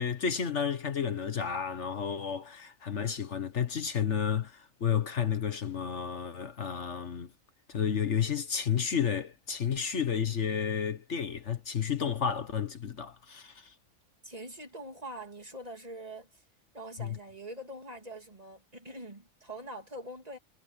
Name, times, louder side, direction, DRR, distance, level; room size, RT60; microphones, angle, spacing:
voice 1, 0.0-7.3 7.7-13.7 17.0-17.2, left 7 dB, 60° left, 1.5 m, -31 dB
voice 2, 14.2-16.4 16.7-20.4, right 1 dB, 30° right, 2.9 m, -44 dB
omnidirectional pair, 1.4 m